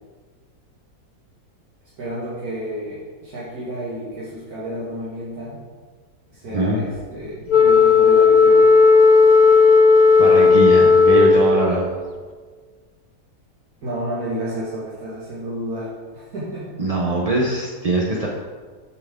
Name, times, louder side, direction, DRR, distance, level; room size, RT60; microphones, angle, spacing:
voice 1, 2.0-5.6 6.3-8.7 13.8-16.7, right 1 dB, 75° right, -9 dB, 2.1 m, -30 dB
voice 2, 6.5-6.8 10.2-11.9 16.8-18.3, right 2 dB, 35° right, -3 dB, 0.6 m, -21 dB
Wind instrument woodwind instrument, 7.5-11.9, left 4 dB, 55° left, 0.5 m, -13 dB
8.0 x 6.9 x 3.6 m, 1.5 s
omnidirectional pair, 1.6 m